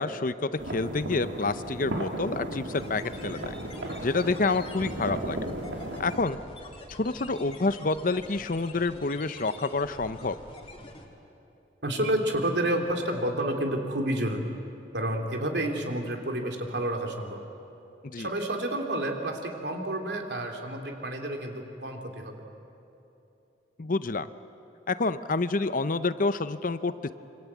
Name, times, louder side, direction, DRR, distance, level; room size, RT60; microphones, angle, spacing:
voice 1, 0.0-3.5 4.0-5.5 6.0-6.4 7.0-10.4 18.0-18.3 23.8-24.3 24.9-27.1, left 3 dB, 45° left, 13 dB, 0.7 m, -28 dB
sound 1, 0.6-6.2, right 1 dB, 85° right, 3.0 m, -35 dB
sound 2, 2.7-11.1, left 2 dB, 30° left, 2.9 m, -46 dB
voice 2, 11.8-14.5 14.9-17.4 18.2-22.5, right 1 dB, 65° right, 2 dB, 3.2 m, -30 dB
26.0 x 25.5 x 8.4 m, 2.8 s
head